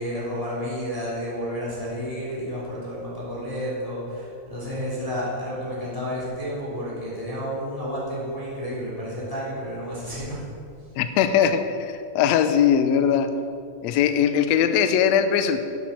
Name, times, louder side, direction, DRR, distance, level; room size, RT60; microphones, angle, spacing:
voice 1, 0.0-10.4, equal, 10° left, -7 dB, 3.0 m, -31 dB
voice 2, 11.0-13.3 13.8-15.6, left 8 dB, 80° left, 9 dB, 1.6 m, -20 dB
12.5 x 11.5 x 4.4 m, 2.5 s
omnidirectional pair, 3.8 m